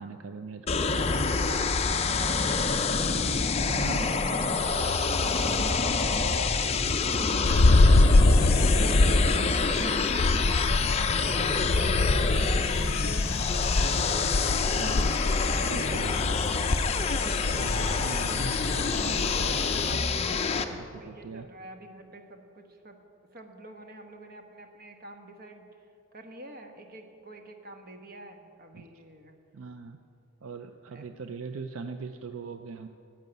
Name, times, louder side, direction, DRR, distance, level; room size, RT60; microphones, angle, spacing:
voice 1, 0.0-1.3 3.7-4.1 14.8-15.1 15.7-16.3 17.2-19.6 19.9-20.1 20.7-21.5 28.7-28.9 29.5-30.0 30.4-32.9, right 4 dB, 70° right, 8 dB, 0.5 m, -40 dB
sound 1, 0.7-20.6, left 4 dB, 30° left, 0.5 m, -27 dB
voice 2, 1.0-3.9 4.2-7.8 8.1-13.3 20.3-23.0 23.3-25.7 26.1-29.4 30.9-31.1, right 1 dB, 45° right, 5 dB, 1.2 m, -46 dB
sound 2, 7.4-19.9, left 2 dB, 75° left, 0.6 m, -25 dB
11.0 x 7.4 x 9.2 m, 2.6 s
head